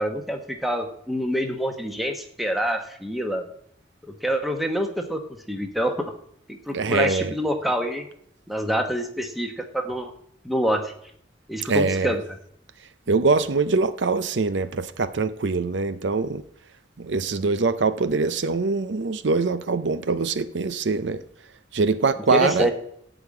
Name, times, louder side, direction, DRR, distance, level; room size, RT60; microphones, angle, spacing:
voice 1, 0.0-3.4 4.0-5.2 5.5-5.9 6.5-8.1 8.5-10.1 10.4-10.9 11.5-12.2 22.3-22.7, equal, ahead, 1.1 m, -26 dB
voice 2, 6.7-7.3 11.7-12.2 13.1-16.4 17.0-21.2 21.7-22.7, right 4 dB, 75° right, 0.6 m, -23 dB
14.0 x 5.1 x 8.5 m
head